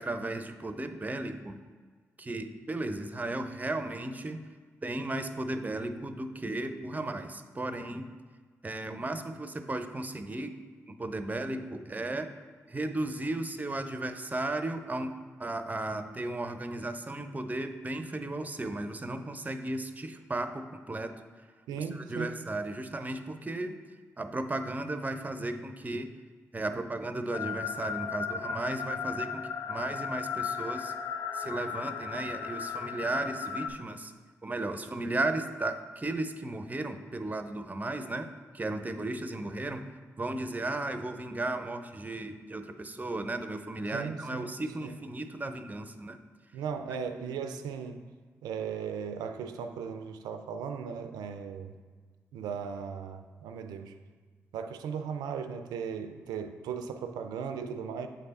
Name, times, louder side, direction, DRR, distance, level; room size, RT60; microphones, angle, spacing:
voice 1, 0.0-1.6 2.2-4.5 4.8-8.1 8.6-10.6 10.9-12.3 12.7-21.2 21.8-23.8 24.2-26.1 26.5-30.9 31.3-34.1 34.4-39.9 40.2-46.2, right 2 dB, 25° right, 9 dB, 0.6 m, -35 dB
voice 2, 21.7-22.4 35.1-35.2 43.9-44.5 44.8-44.9 46.5-48.0 48.4-51.7 52.3-53.9 54.5-58.1, right 6 dB, 80° right, 8 dB, 0.4 m, -37 dB
sound 1, 27.3-33.7, left 6 dB, 70° left, 0.4 m, -36 dB
7.5 x 3.3 x 4.1 m, 1.5 s
hypercardioid pair, 40°, 7 cm